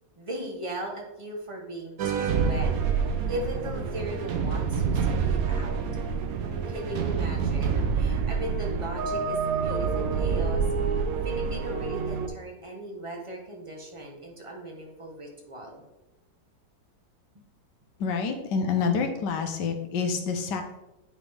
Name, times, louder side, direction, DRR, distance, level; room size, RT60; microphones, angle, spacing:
voice 1, 0.2-2.7 3.3-5.8 6.7-10.9 11.2-15.8, right 1 dB, 25° right, 0 dB, 0.8 m, -38 dB
sound 1, 2.0-12.3, right 5 dB, 65° right, 0.9 m, -27 dB
voice 2, 18.0-20.6, left 5 dB, 70° left, 5 dB, 1.4 m, -27 dB
9.7 x 3.8 x 3.4 m, 0.96 s
omnidirectional pair, 1.9 m